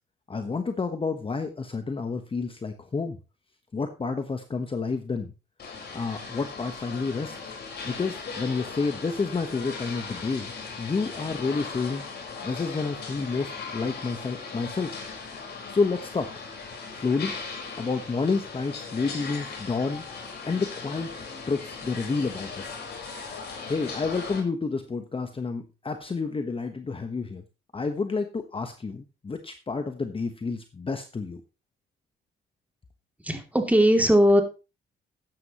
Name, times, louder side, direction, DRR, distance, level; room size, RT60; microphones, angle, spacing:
voice 1, 0.3-3.2 3.7-5.3 5.9-7.5 7.8-10.5 10.8-12.0 12.4-15.0 15.7-16.4 16.9-17.3 17.8-20.0 20.4-21.1 21.5-22.8 23.7-27.4 27.7-31.4, left 4 dB, 25° left, 7 dB, 1.2 m, -29 dB
sound 1, 5.6-24.4, left 4 dB, 55° left, 4.8 m, -38 dB
voice 2, 33.2-34.4, equal, 5° right, 4 dB, 2.7 m, -19 dB
13.5 x 9.8 x 3.0 m, 0.30 s
cardioid pair, 90°, 20 cm